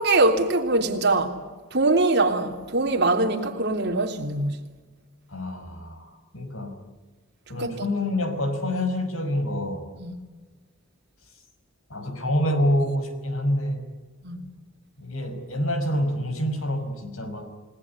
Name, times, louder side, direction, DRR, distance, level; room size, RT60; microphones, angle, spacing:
voice 1, 0.0-1.4 1.7-4.6 7.6-7.9 10.0-10.2 14.2-14.4, right 2 dB, 55° right, 3.4 m, -23 dB
voice 2, 5.3-6.7 7.5-9.9 11.9-13.8 15.0-17.5, left 1 dB, 75° left, 5.5 m, -27 dB
30.0 x 19.0 x 9.9 m
head